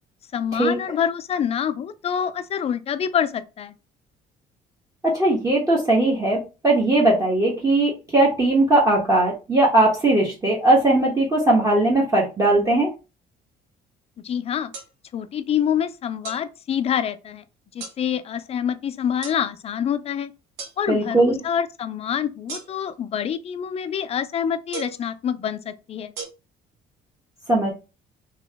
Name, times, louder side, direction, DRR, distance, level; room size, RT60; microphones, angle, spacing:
voice 1, 0.3-3.7 14.2-14.7 15.1-17.4 17.7-20.3 20.8-26.1, left 8 dB, 35° left, 0.4 m, -26 dB
voice 2, 5.0-12.9 20.9-21.4 27.5-27.7, right 2 dB, 20° right, 1.0 m, -19 dB
sound 1, 14.7-14.9 16.2-16.4 17.8-18.0 19.2-19.4 20.6-20.8 22.5-22.9 24.7-25.0 26.2-26.3, right 5 dB, 85° right, 1.1 m, -35 dB
3.0 x 2.9 x 3.4 m
cardioid pair, 110°, 17 cm